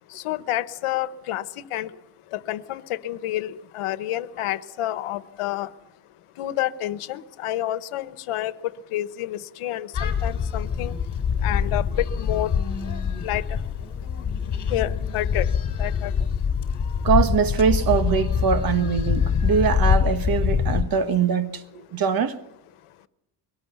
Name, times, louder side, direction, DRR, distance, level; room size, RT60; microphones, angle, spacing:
voice 1, 0.2-1.4 1.7-1.9 2.3-5.7 6.4-8.5 8.9-10.9 11.4-11.9 12.2-12.5 13.2-13.4 14.7-15.5 15.8-16.1, left 14 dB, 85° left, 1.3 m, -29 dB
sound 1, 9.9-20.8, left 7 dB, 35° left, 3.5 m, -24 dB
voice 2, 17.0-22.4, right 6 dB, 45° right, 1.5 m, -22 dB
23.0 x 18.0 x 6.9 m
cardioid pair, 160°, 50 cm